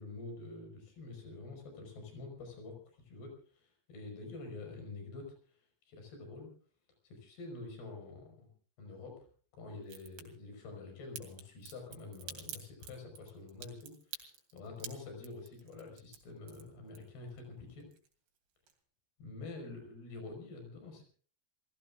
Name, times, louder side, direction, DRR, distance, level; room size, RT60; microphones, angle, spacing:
voice 1, 0.0-2.8 3.0-5.3 5.9-6.5 7.0-8.5 8.8-9.2 9.5-17.9 19.2-21.0, left 3 dB, 60° left, 3 dB, 7.1 m, -47 dB
Crack, 9.8-10.2 11.1-17.4 17.7-18.4 18.7-18.8, right 8 dB, 75° right, 4.8 m, -48 dB
28.5 x 17.0 x 2.5 m, 0.43 s
omnidirectional pair, 5.1 m